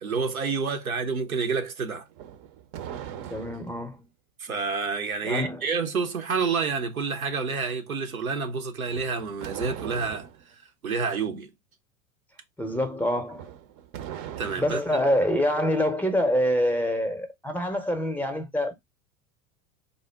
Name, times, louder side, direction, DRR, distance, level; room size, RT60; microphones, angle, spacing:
voice 1, 0.0-2.1 4.4-10.3 10.8-11.5 14.4-14.8, right 5 dB, 85° right, 0.8 m, -28 dB
sound 1, 2.1-3.9 8.8-10.4 13.3-15.0, right 10 dB, 45° right, 0.6 m, -40 dB
voice 2, 3.3-4.1 5.2-5.7 12.6-13.5 14.6-18.7, equal, 5° left, 0.6 m, -26 dB
3.8 x 2.1 x 3.3 m
figure-of-eight pair, 85°, 41 cm